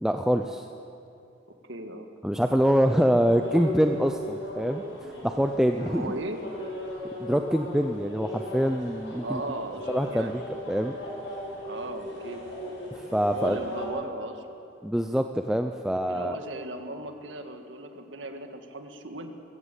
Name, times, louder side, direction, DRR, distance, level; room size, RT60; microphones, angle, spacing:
voice 1, 0.0-0.7 2.2-6.1 7.2-9.4 9.9-11.0 12.9-13.6 14.8-16.4, equal, 5° right, 5 dB, 0.5 m, -25 dB
voice 2, 1.7-2.1 5.8-6.4 9.2-10.4 11.6-12.4 13.1-14.5 16.1-19.3, right 2 dB, 75° right, 6 dB, 1.8 m, -37 dB
sound 1, 3.3-13.9, left 1 dB, 75° left, 6.7 m, -37 dB
22.0 x 15.5 x 8.3 m, 2.7 s
head